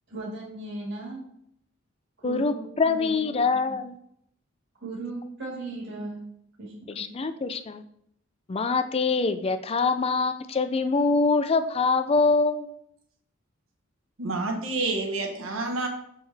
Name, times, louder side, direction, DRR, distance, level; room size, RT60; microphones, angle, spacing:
voice 1, 0.1-1.2 2.2-3.8 4.8-6.2 6.6-7.1, right 2 dB, 60° right, -5 dB, 1.9 m, -37 dB
voice 2, 2.2-3.9 7.0-7.8 8.5-12.7, left 4 dB, 30° left, 10 dB, 0.4 m, -24 dB
voice 3, 14.2-15.9, right 2 dB, 80° right, 3 dB, 1.3 m, -28 dB
6.3 x 5.2 x 3.4 m, 0.73 s
head